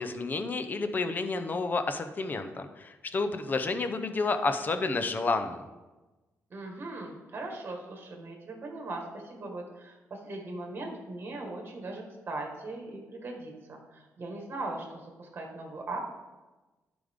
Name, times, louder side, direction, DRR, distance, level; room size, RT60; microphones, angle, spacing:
voice 1, 0.0-5.6, left 3 dB, 35° left, 8 dB, 0.7 m, -30 dB
voice 2, 6.5-16.0, right 2 dB, 40° right, 1 dB, 1.8 m, -39 dB
11.5 x 5.2 x 3.7 m, 1.1 s
cardioid pair, 110°, 6 cm